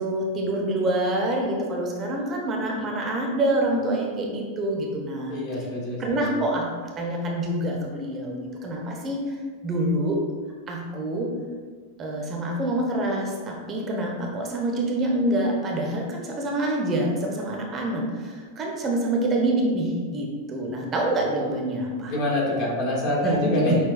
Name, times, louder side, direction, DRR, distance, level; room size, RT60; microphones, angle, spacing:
voice 1, 0.0-5.3 6.0-6.6 7.0-9.2 9.6-10.2 10.7-11.3 12.0-22.1 23.2-23.8, right 1 dB, 25° right, 0 dB, 0.5 m, -26 dB
voice 2, 5.3-6.4 22.1-23.8, left 1 dB, 45° left, -3 dB, 1.0 m, -26 dB
5.7 x 2.2 x 2.4 m, 1.5 s
figure-of-eight pair, 90°, 0 cm